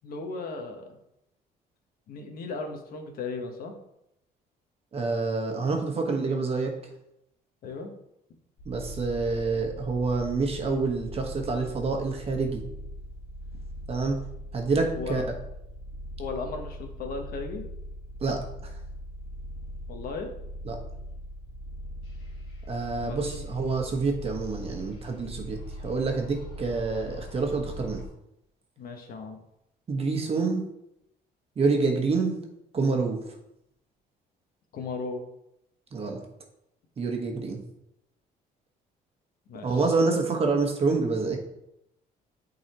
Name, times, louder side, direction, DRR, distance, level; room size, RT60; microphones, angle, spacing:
voice 1, 0.0-1.0 2.1-3.7 7.6-7.9 14.9-15.3 16.2-17.6 19.9-20.3 23.0-23.4 28.8-29.4 34.7-35.2 39.5-39.9, left 4 dB, 60° left, 3 dB, 1.1 m, -36 dB
voice 2, 4.9-6.7 8.6-12.6 13.9-14.2 14.5-15.2 18.2-18.7 20.6-20.8 22.7-28.0 29.9-30.6 31.6-32.4 32.7-33.3 35.9-36.2 37.0-37.6 39.6-41.4, right 4 dB, 35° right, 2 dB, 1.2 m, -27 dB
sound 1, 8.6-28.1, equal, 85° left, 1.6 m, -40 dB
8.4 x 4.0 x 2.9 m, 0.81 s
cardioid pair, 110°, 17 cm